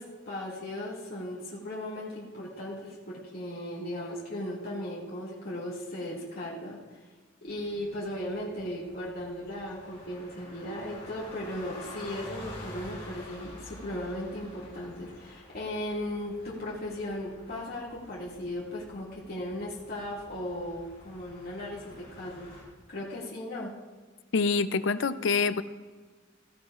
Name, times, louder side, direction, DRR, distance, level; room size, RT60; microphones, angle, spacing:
voice 1, 0.0-7.1 7.4-22.6 22.9-23.7, left 1 dB, 50° left, -7 dB, 2.3 m, -37 dB
sound 1, 7.5-22.6, left 1 dB, 35° left, 4.6 m, -49 dB
voice 2, 24.3-25.6, left 4 dB, 70° left, 13 dB, 0.5 m, -26 dB
16.5 x 16.0 x 2.5 m, 1.4 s
head